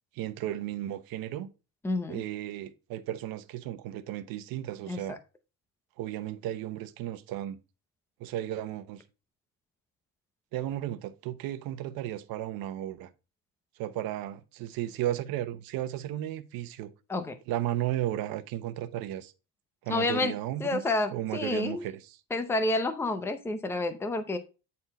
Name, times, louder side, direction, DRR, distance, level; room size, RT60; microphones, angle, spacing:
voice 1, 0.1-1.5 2.1-5.2 6.0-7.6 8.2-9.0 10.5-13.1 13.8-16.9 17.5-19.3 19.8-20.8 21.1-22.2, right 13 dB, 75° right, 1.0 m, -34 dB
voice 2, 1.8-2.2 4.9-5.2 17.1-17.4 19.9-20.3 20.6-21.8 22.3-24.4, left 2 dB, 5° left, 0.6 m, -29 dB
9.6 x 4.4 x 4.2 m
cardioid pair, 160°, 36 cm